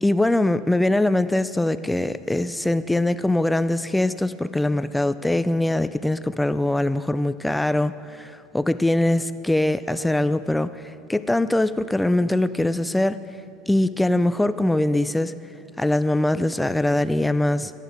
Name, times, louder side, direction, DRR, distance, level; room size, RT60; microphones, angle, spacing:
voice 1, 0.0-10.8 11.1-13.2 13.7-15.3 15.8-17.7, left 1 dB, 5° left, 14 dB, 0.3 m, -22 dB
14.0 x 11.0 x 5.1 m, 2.8 s
supercardioid pair, 110°, 0 cm